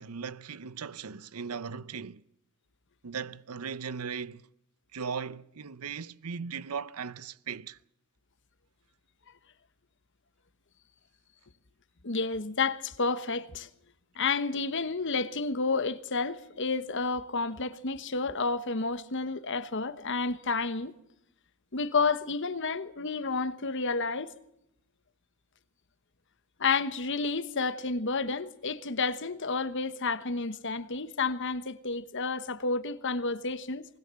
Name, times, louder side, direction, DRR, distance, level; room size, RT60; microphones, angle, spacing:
voice 1, 0.0-2.2 3.0-4.4 4.9-7.8, right 6 dB, 90° right, 0.7 m, -38 dB
voice 2, 12.0-13.7 14.1-20.9 21.7-24.3 26.6-33.9, left 4 dB, 55° left, 1.2 m, -30 dB
20.5 x 20.0 x 7.6 m
head